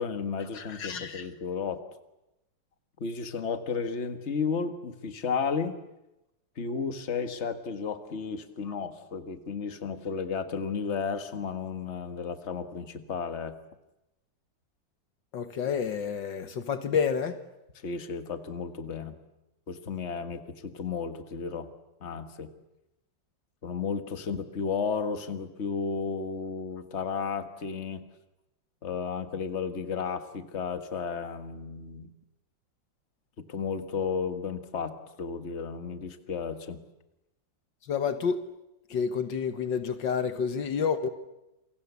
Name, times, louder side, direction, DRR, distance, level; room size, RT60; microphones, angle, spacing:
voice 1, 0.0-1.8 3.0-5.8 6.6-13.6 17.8-19.2 19.7-21.7 22.0-22.5 23.6-28.0 28.8-32.1 33.4-36.8, left 5 dB, 35° left, 1.8 m, -33 dB
voice 2, 0.5-1.3 15.3-17.4 37.9-38.4 38.9-41.1, left 6 dB, 70° left, 1.9 m, -29 dB
28.5 x 23.0 x 8.3 m
omnidirectional pair, 2.1 m